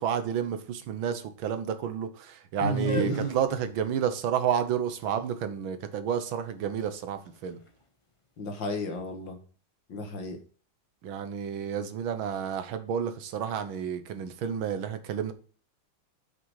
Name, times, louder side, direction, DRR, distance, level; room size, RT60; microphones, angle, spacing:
voice 1, 0.0-7.6 11.0-15.3, right 8 dB, 75° right, 9 dB, 1.7 m, -30 dB
voice 2, 2.6-3.3 8.4-9.4 9.9-10.4, equal, 65° left, 4 dB, 2.2 m, -31 dB
sound 1, 2.7-8.6, left 3 dB, 25° left, 0.8 m, -43 dB
7.9 x 6.3 x 4.7 m, 0.40 s
omnidirectional pair, 2.2 m